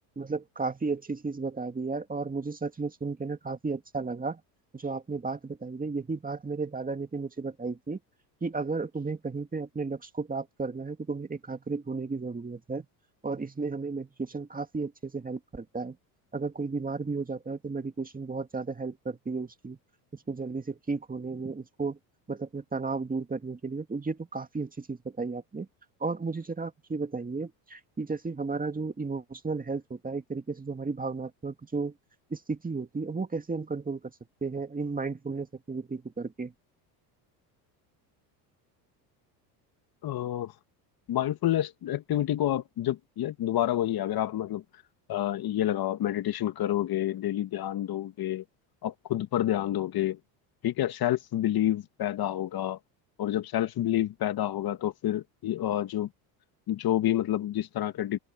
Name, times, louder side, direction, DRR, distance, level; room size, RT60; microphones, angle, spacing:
voice 1, 0.2-4.4 4.7-8.0 8.4-12.9 13.2-16.0 16.3-19.8 20.1-22.0 22.3-25.7 26.0-31.9 32.3-34.0 34.4-36.5, right 4 dB, 15° right, 2.3 m, -34 dB
voice 2, 40.0-40.5 41.1-44.6 45.1-48.4 48.8-50.2 50.6-52.8 53.2-56.1 56.7-58.2, left 12 dB, 45° left, 1.7 m, -28 dB
open air
supercardioid pair, 90°, 50 cm